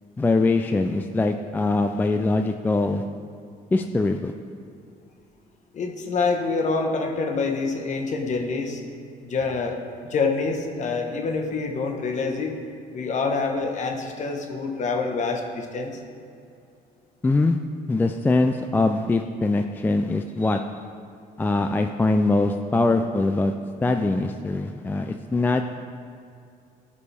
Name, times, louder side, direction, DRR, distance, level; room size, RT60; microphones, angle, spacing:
voice 1, 0.2-3.0 3.7-4.3 17.2-17.6 17.9-20.6 21.4-23.5 23.8-25.6, left 2 dB, 10° left, 6 dB, 0.3 m, -22 dB
voice 2, 5.7-8.8 9.2-9.8 10.1-12.6 12.9-16.0 20.4-20.5, left 4 dB, 45° left, 3 dB, 1.1 m, -26 dB
15.5 x 5.2 x 3.4 m, 2.4 s
cardioid pair, 110°, 17 cm